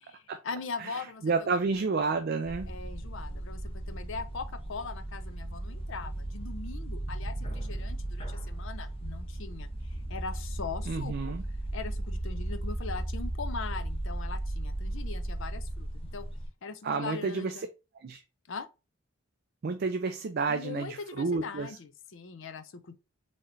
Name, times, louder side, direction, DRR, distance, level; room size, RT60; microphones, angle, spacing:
voice 1, 0.0-1.8 2.7-11.3 11.7-16.3 16.6-17.7 18.5-18.7 20.5-22.9, left 4 dB, 60° left, 0.6 m, -41 dB
voice 2, 0.8-2.7 10.9-11.4 16.8-17.7 18.0-18.2 19.6-21.8, right 4 dB, 50° right, 0.4 m, -30 dB
sound 1, 2.4-16.5, right 1 dB, 25° left, 0.8 m, -36 dB
4.1 x 3.1 x 2.6 m
head